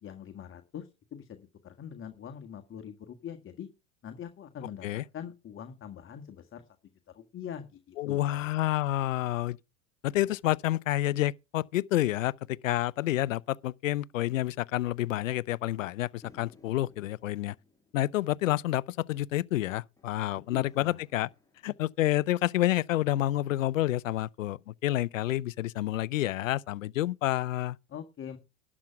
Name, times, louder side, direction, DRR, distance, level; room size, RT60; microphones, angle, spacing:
voice 1, 0.0-3.7 4.0-6.6 7.1-8.5 20.5-21.0 27.9-28.4, left 8 dB, 30° left, 1.8 m, -43 dB
voice 2, 8.0-9.6 10.0-17.5 17.9-21.3 21.6-27.8, left 15 dB, 85° left, 0.6 m, -29 dB
sound 1, 16.2-22.7, left 3 dB, 10° left, 4.4 m, -62 dB
12.0 x 7.3 x 5.7 m
hypercardioid pair, 90°, 38 cm